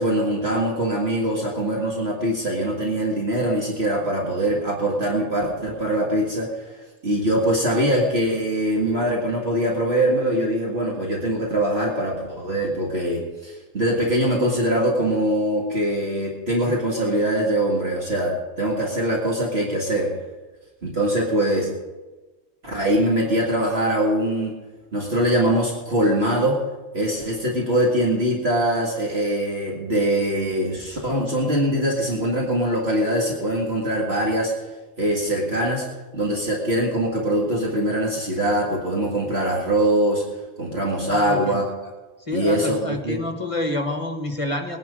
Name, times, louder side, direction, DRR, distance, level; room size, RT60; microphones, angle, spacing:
voice 1, 0.0-6.7 7.0-20.1 20.8-21.7 22.6-24.6 24.9-26.7 26.9-34.5 35.0-35.9 36.1-40.2 40.6-41.6 42.3-43.2, right 1 dB, 50° right, -3 dB, 2.2 m, -22 dB
voice 2, 41.1-41.6 42.3-44.8, left 1 dB, 25° left, 5 dB, 1.1 m, -28 dB
18.5 x 10.5 x 5.0 m, 1.2 s
omnidirectional pair, 1.4 m